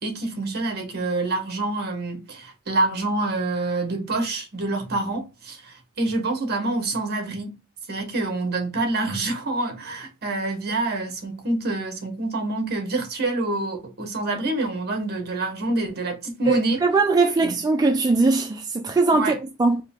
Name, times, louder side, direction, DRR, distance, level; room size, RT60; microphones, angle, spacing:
voice 1, 0.0-7.5 7.9-16.8 17.4-17.5 19.1-19.4, right 2 dB, 45° right, 1.1 m, -26 dB
voice 2, 16.5-19.8, right 3 dB, 15° right, 0.3 m, -21 dB
4.8 x 2.2 x 3.5 m
head